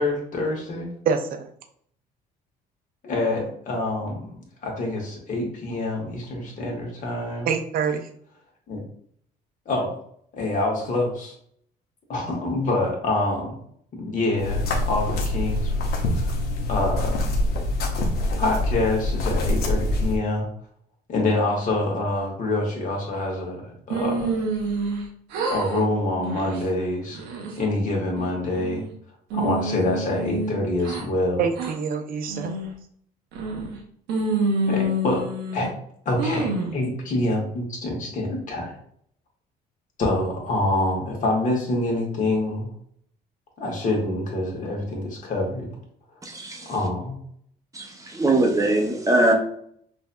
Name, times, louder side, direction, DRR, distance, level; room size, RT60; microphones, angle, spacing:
voice 1, 0.0-0.9 3.0-4.3 4.6-7.5 8.7-8.8 9.6-10.0 10.3-11.3 12.1-13.6 13.9-15.8 16.1-16.3 16.7-17.3 18.4-20.5 21.1-24.4 25.5-27.3 27.6-28.8 29.3-31.4 34.7-35.3 35.5-35.7 36.0-38.7 40.0-42.7 43.6-45.7 46.6-47.2, left 2 dB, 50° left, -1 dB, 1.4 m, -26 dB
voice 2, 1.1-1.5 7.5-8.1 31.4-32.5, right 6 dB, 60° right, 6 dB, 0.6 m, -25 dB
sound 1, 14.4-20.2, left 1 dB, 70° left, 0.9 m, -25 dB
sound 2, 23.9-25.0 25.3-25.8 26.2-26.6 27.1-27.7 28.2-28.9 29.3-31.0 31.6-31.7 32.3-32.7 33.3-33.8 34.1-35.7 36.2-36.8, right 2 dB, 90° right, 0.9 m, -27 dB
voice 3, 46.2-46.7 47.7-49.3, right 2 dB, 20° right, 2 dB, 0.8 m, -21 dB
5.4 x 2.7 x 2.2 m, 0.65 s
cardioid pair, 110°, 17 cm